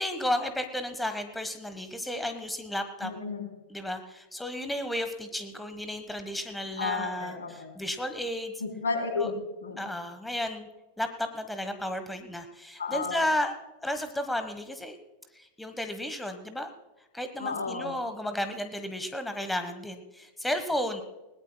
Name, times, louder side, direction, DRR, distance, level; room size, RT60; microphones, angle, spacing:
voice 1, 0.0-3.1 3.7-8.5 9.2-9.3 9.8-10.7 11.0-13.5 13.8-15.0 15.3-16.7 17.1-21.0, left 1 dB, 5° left, 8 dB, 1.3 m, -33 dB
voice 2, 3.0-3.5 6.8-7.8 8.6-9.4 9.6-9.8 12.8-13.2 17.4-18.0, left 4 dB, 70° left, 4 dB, 3.4 m, -32 dB
21.0 x 19.0 x 2.3 m, 1.0 s
figure-of-eight pair, 90°, 0 cm